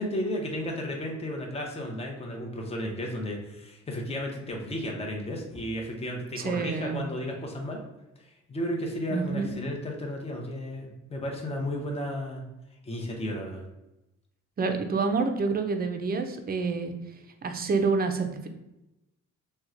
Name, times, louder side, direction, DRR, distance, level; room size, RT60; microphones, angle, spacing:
voice 1, 0.0-7.8 8.2-12.4 12.8-13.6, equal, 20° left, 0 dB, 0.7 m, -33 dB
voice 2, 6.4-7.0 9.1-9.5 14.6-16.9 17.4-18.5, right 4 dB, 30° right, 6 dB, 0.5 m, -28 dB
2.9 x 2.2 x 3.6 m, 0.94 s
cardioid pair, 90°, 30 cm